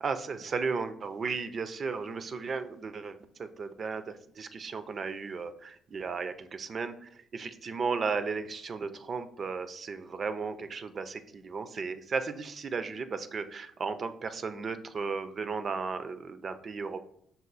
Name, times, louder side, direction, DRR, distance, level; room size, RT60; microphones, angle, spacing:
voice 1, 0.0-17.0, right 5 dB, 45° right, 11 dB, 0.4 m, -35 dB
5.4 x 2.3 x 3.9 m, 0.67 s
cardioid pair, 90°, 0 cm